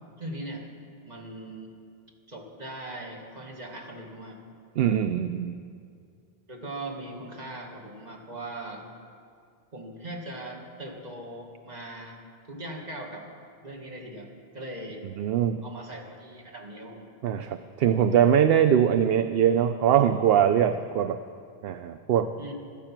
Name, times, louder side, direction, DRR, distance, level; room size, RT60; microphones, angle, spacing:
voice 1, 0.2-0.6 1.0-1.7 2.3-4.4 6.5-8.8 9.7-12.2 12.5-13.3 13.6-14.3 14.5-15.1 15.6-17.1 22.4-22.5, right 1 dB, 45° right, 0 dB, 1.9 m, -39 dB
voice 2, 4.8-5.6 15.2-15.6 17.2-21.2 21.6-22.3, right 9 dB, 70° right, 10 dB, 0.8 m, -22 dB
15.5 x 12.5 x 5.9 m, 2.4 s
omnidirectional pair, 1.0 m